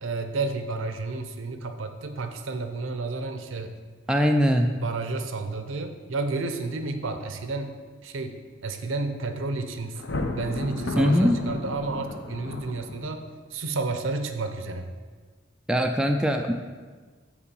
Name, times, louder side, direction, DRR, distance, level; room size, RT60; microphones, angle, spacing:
voice 1, 0.0-3.7 4.7-7.7 8.0-14.9, right 3 dB, 75° right, 7 dB, 0.7 m, -31 dB
voice 2, 4.1-4.7 11.0-11.4 15.7-16.5, equal, 5° right, 3 dB, 0.3 m, -21 dB
Thunder, 9.9-13.3, left 2 dB, 60° left, 0.6 m, -33 dB
7.1 x 4.8 x 5.4 m, 1.4 s
head